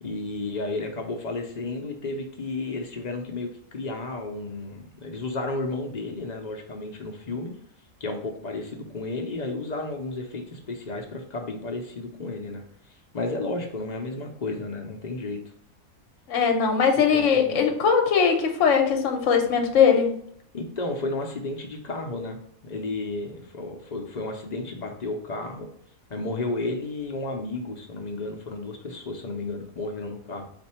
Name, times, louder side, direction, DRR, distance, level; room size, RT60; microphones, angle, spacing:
voice 1, 0.0-7.5 8.0-12.6 13.1-15.4 17.1-17.6 20.5-22.4 22.6-25.7 26.1-30.4, left 2 dB, 40° left, 3 dB, 0.6 m, -32 dB
voice 2, 16.3-20.1, left 6 dB, 65° left, 4 dB, 1.1 m, -20 dB
4.3 x 2.6 x 4.2 m, 0.66 s
omnidirectional pair, 1.5 m